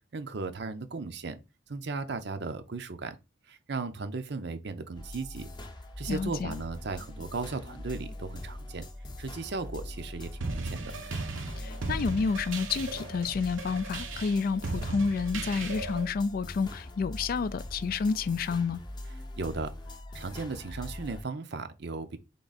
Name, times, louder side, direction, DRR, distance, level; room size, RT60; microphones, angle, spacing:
voice 1, 0.1-1.4 1.7-3.2 3.5-5.5 6.0-8.8 9.2-10.9 19.4-19.7 20.1-22.2, right 3 dB, 60° right, 0.6 m, -36 dB
sound 1, 4.9-21.2, left 1 dB, 25° left, 0.7 m, -42 dB
voice 2, 6.1-6.6 11.6-18.8, left 5 dB, 50° left, 0.3 m, -29 dB
sound 2, 10.4-16.1, right 3 dB, 85° right, 0.8 m, -37 dB
3.7 x 3.4 x 4.0 m
head